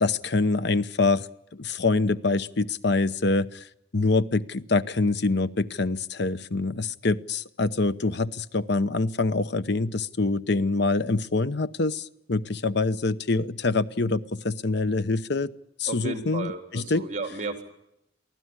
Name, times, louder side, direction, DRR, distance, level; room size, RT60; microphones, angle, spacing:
voice 1, 0.0-1.3 1.5-3.6 3.9-15.5 15.8-17.0, left 3 dB, 65° left, 14 dB, 0.9 m, -25 dB
voice 2, 15.9-17.6, right 3 dB, 45° right, 6 dB, 3.7 m, -33 dB
24.0 x 15.5 x 9.7 m, 0.79 s
head